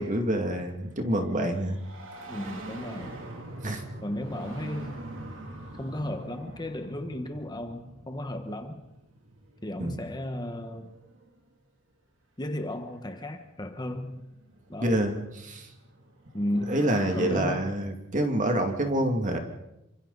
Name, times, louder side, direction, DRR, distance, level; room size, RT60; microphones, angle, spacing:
voice 1, 0.0-1.8 3.6-3.8 9.8-10.0 14.8-15.7 16.7-19.4, right 1 dB, 40° right, 4 dB, 2.5 m, -27 dB
sound 1, 0.9-11.5 12.8-12.9 13.9-17.7, right 1 dB, 70° right, 2.9 m, -44 dB
voice 2, 2.3-3.2 4.0-5.0 5.8-8.8 9.6-11.0 12.4-14.2 14.7-15.0 16.3-16.8 17.1-17.7, left 1 dB, 20° left, 7 dB, 1.4 m, -34 dB
28.0 x 25.5 x 4.1 m, 0.88 s
head